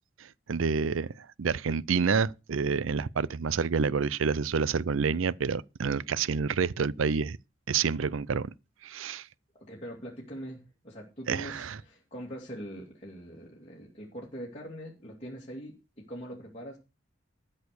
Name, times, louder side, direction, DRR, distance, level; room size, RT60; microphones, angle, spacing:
voice 1, 0.5-7.4 7.7-8.5 8.8-9.3 11.3-11.8, right 5 dB, 85° right, 0.5 m, -28 dB
voice 2, 9.5-15.7 16.1-16.8, equal, 30° left, 2.6 m, -42 dB
13.0 x 6.5 x 6.8 m
head